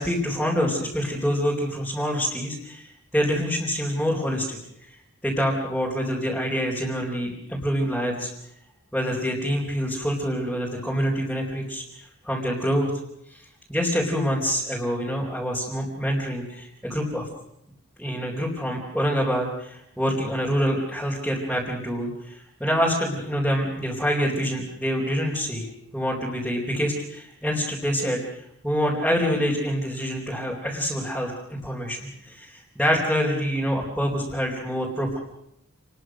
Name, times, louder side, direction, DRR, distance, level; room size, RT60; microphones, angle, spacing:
voice 1, 0.0-2.9 3.1-4.6 5.2-8.3 8.9-11.8 12.3-12.9 13.7-17.3 18.0-25.7 25.9-28.2 28.6-35.2, equal, ahead, -4 dB, 4.2 m, -26 dB
28.0 x 21.5 x 6.4 m, 0.76 s
head